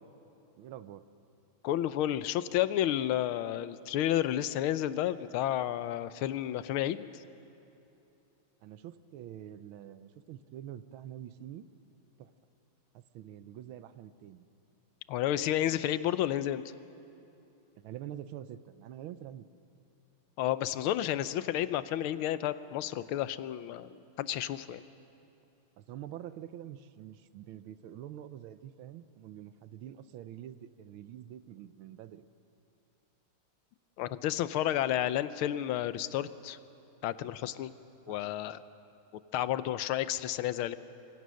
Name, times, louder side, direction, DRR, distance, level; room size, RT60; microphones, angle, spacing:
voice 1, 0.6-1.0 8.6-11.7 12.2-12.3 12.9-14.4 17.8-19.4 25.8-32.2 38.1-38.2, right 11 dB, 80° right, 13 dB, 1.6 m, -46 dB
voice 2, 1.6-7.2 15.1-16.7 20.4-24.8 34.0-36.6 37.0-37.7 38.1-38.6 39.3-40.8, left 12 dB, 85° left, 14 dB, 1.5 m, -31 dB
26.0 x 23.0 x 6.4 m, 2.8 s
omnidirectional pair, 2.3 m